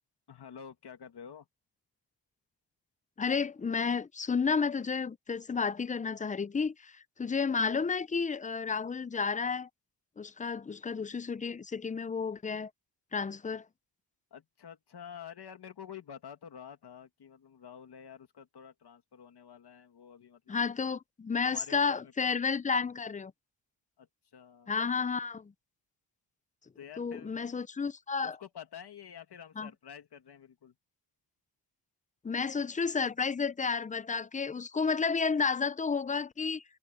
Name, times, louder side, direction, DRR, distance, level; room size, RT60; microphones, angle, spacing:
voice 1, 0.3-1.5 14.3-20.6 20.8-21.0 21.4-22.4 24.0-24.1 24.3-24.7 26.8-27.3 28.2-30.7, left 8 dB, 60° left, 2.1 m, -49 dB
voice 2, 3.2-9.7 10.2-12.7 13.1-13.7 20.5-23.3 24.7-25.5 27.0-28.4 29.6-29.7 32.2-36.6, left 5 dB, 20° left, 0.4 m, -31 dB
wide cardioid pair, 115°, 45 cm